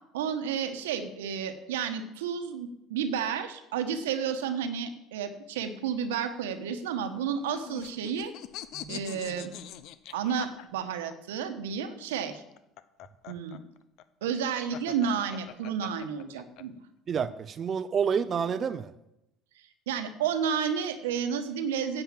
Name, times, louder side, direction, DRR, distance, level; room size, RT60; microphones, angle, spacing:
voice 1, 0.1-8.3 8.9-9.5 10.1-12.4 13.3-13.6 14.2-16.7 19.9-22.0, right 7 dB, 90° right, 8 dB, 1.2 m, -31 dB
sound 1, 7.1-11.1 12.4-16.6, left 12 dB, 65° left, 0.8 m, -43 dB
voice 2, 17.1-18.9, right 7 dB, 40° right, 12 dB, 0.6 m, -29 dB
9.9 x 8.0 x 7.4 m, 0.86 s
supercardioid pair, 80°, 0 cm